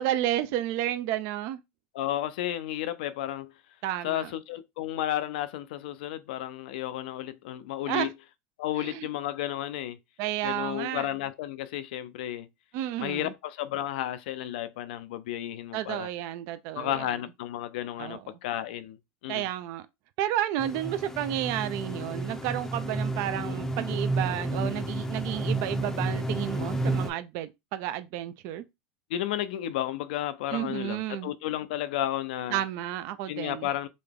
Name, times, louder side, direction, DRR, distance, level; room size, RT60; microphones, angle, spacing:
voice 1, 0.0-1.6 3.8-4.3 7.9-8.1 8.8-9.1 10.2-11.1 12.7-13.3 15.7-17.2 18.0-18.4 19.3-19.9 20.2-28.7 30.5-31.3 32.5-33.7, right 12 dB, 65° right, 0.4 m, -31 dB
voice 2, 1.9-3.5 4.0-8.1 8.6-10.0 10.4-12.5 13.0-16.1 16.7-19.5 29.1-32.6 33.3-33.9, left 12 dB, 80° left, 0.4 m, -32 dB
sound 1, 20.6-27.1, right 2 dB, 10° left, 0.5 m, -31 dB
3.8 x 2.2 x 3.3 m
supercardioid pair, 115°, 5 cm